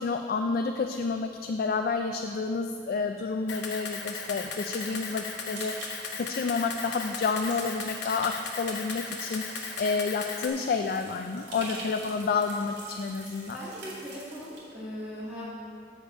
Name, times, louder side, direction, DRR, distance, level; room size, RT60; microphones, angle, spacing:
voice 1, 0.0-9.4 9.8-13.6, left 4 dB, 55° left, 5 dB, 0.3 m, -30 dB
Camera, 3.5-10.5, left 5 dB, 85° left, 0.9 m, -37 dB
sound 1, 4.9-14.6, right 2 dB, 85° right, 1.9 m, -46 dB
voice 2, 13.5-15.4, equal, 5° right, -9 dB, 1.5 m, -39 dB
7.2 x 6.7 x 4.8 m, 2.3 s
head